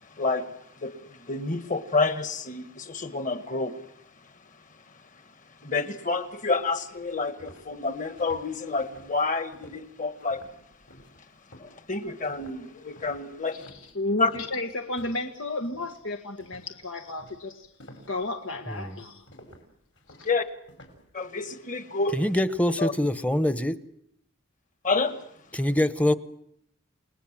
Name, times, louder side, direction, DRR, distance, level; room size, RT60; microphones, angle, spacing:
voice 1, 0.0-3.8 5.6-10.4 11.6-13.7 14.2-14.3 20.2-20.4 21.1-22.2 22.8-22.9 24.8-25.2, left 3 dB, 40° left, 9 dB, 1.8 m, -29 dB
sound 1, 6.9-15.4 15.6-16.0 16.4-21.1, equal, 70° left, 5.3 m, -52 dB
voice 2, 13.6-17.7 18.1-19.2 20.2-20.3, left 2 dB, 90° left, 4 dB, 1.7 m, -32 dB
voice 3, 22.1-23.8 25.5-26.1, left 1 dB, 5° left, 12 dB, 0.9 m, -24 dB
29.5 x 19.5 x 7.6 m, 0.73 s
head